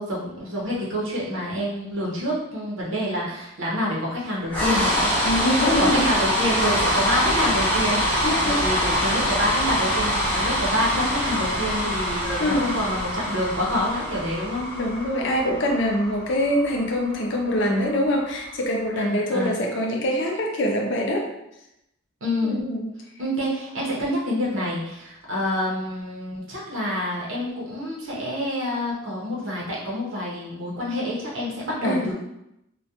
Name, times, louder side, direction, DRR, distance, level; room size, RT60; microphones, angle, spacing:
voice 1, 0.0-5.1 5.8-14.7 19.0-19.6 22.2-22.7 23.2-32.1, equal, 70° right, -5 dB, 0.7 m, -27 dB
sound 1, 4.5-18.6, equal, 10° left, 0.6 m, -25 dB
voice 2, 5.2-6.0 8.2-8.6 12.2-12.8 14.7-21.3 22.4-22.9 31.8-32.1, left 1 dB, 60° left, 0 dB, 0.5 m, -24 dB
2.2 x 2.1 x 2.7 m, 0.85 s
head